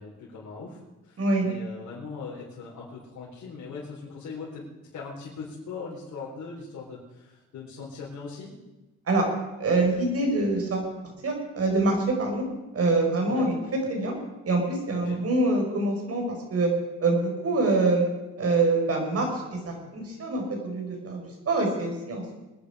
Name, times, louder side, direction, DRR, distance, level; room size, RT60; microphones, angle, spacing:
voice 1, 0.0-4.6 4.9-8.5 13.3-13.4 15.0-15.2, left 4 dB, 70° left, -6 dB, 4.3 m, -40 dB
voice 2, 1.2-1.5 9.1-9.2 9.6-10.9 11.2-12.4 12.7-13.5 13.9-14.1 14.4-16.7 17.0-18.1 18.4-22.3, right 2 dB, 50° right, 2 dB, 5.1 m, -25 dB
24.0 x 10.0 x 5.0 m, 1.1 s
cardioid pair, 90°, 30 cm